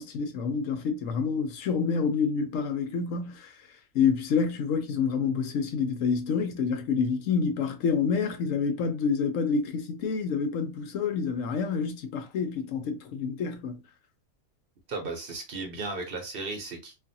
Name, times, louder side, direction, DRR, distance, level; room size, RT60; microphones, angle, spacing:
voice 1, 0.0-3.5 3.9-13.8, left 5 dB, 70° left, 0.9 m, -28 dB
voice 2, 14.9-16.9, right 3 dB, 50° right, 0.8 m, -35 dB
2.6 x 2.4 x 2.6 m
omnidirectional pair, 1.6 m